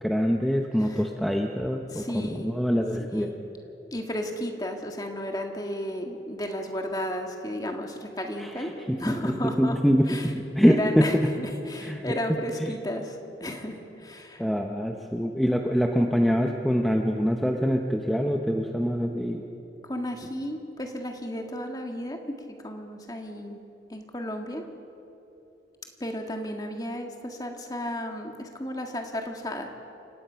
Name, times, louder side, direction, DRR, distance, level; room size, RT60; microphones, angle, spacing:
voice 1, 0.0-3.3 8.4-10.1 10.3-11.1 11.8-12.0 12.6-12.7 14.4-19.4, equal, ahead, 2 dB, 0.8 m, -25 dB
voice 2, 1.9-2.5 3.0-3.4 3.9-9.8 10.1-10.3 10.6-14.5 19.8-22.2 22.6-23.6 23.9-24.6 26.0-29.7, left 1 dB, 20° left, 3 dB, 1.8 m, -33 dB
29.0 x 17.5 x 5.8 m, 3.0 s
head